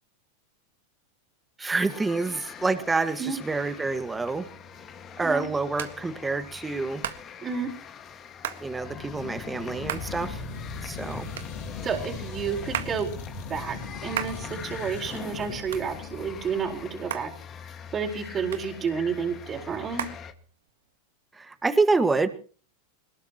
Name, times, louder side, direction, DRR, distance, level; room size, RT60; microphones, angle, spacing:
voice 1, 1.6-4.5 5.2-7.0 8.6-10.4 10.8-11.3 21.4-22.3, right 3 dB, 10° right, 9 dB, 1.7 m, -27 dB
sound 1, 1.9-20.3, left 7 dB, 35° left, 1.8 m, -43 dB
Hands, 4.3-20.9, right 10 dB, 85° right, 1.7 m, -40 dB
sound 2, 8.8-16.8, left 4 dB, 65° left, 6.3 m, -39 dB
voice 2, 11.8-13.1 13.5-17.3 17.9-20.1, right 6 dB, 30° right, 1 dB, 4.4 m, -30 dB
21.5 x 20.0 x 3.0 m, 0.39 s
hypercardioid pair, 115°, 0 cm